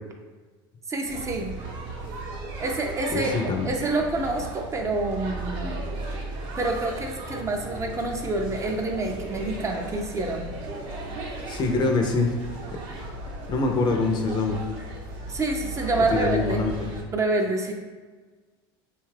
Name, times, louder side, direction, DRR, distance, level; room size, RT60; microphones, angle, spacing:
voice 1, 0.9-1.5 2.6-3.3 3.7-5.8 6.6-10.4 15.3-16.6 17.1-17.7, right 2 dB, 25° right, 2 dB, 0.4 m, -27 dB
sound 1, 1.0-17.0, right 2 dB, 60° right, 0.7 m, -36 dB
voice 2, 3.1-3.7 11.5-12.3 12.7-12.8 13.5-14.6 16.0-16.9, left 3 dB, 35° left, 3 dB, 0.4 m, -24 dB
2.7 x 2.3 x 3.2 m, 1.4 s
supercardioid pair, 95°, 13 cm